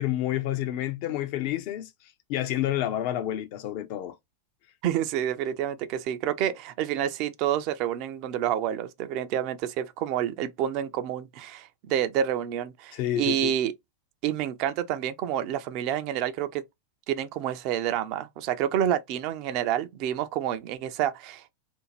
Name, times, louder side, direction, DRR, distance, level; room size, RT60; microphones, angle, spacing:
voice 1, 0.0-1.9 2.3-4.2 12.9-13.5, left 13 dB, 45° left, 0.4 m, -29 dB
voice 2, 4.8-13.7 14.2-16.6 17.1-21.5, right 10 dB, 40° right, 0.4 m, -28 dB
2.6 x 2.2 x 3.0 m
figure-of-eight pair, 90°, 0 cm